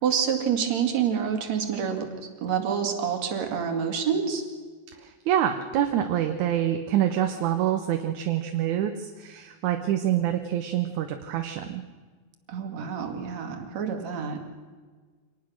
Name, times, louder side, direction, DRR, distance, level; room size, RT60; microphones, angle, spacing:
voice 1, 0.0-2.1 2.4-4.5 12.5-14.4, right 7 dB, 65° right, 5 dB, 3.4 m, -27 dB
voice 2, 5.0-11.8, right 11 dB, 80° right, 6 dB, 2.4 m, -26 dB
25.5 x 19.0 x 6.4 m, 1.5 s
omnidirectional pair, 3.4 m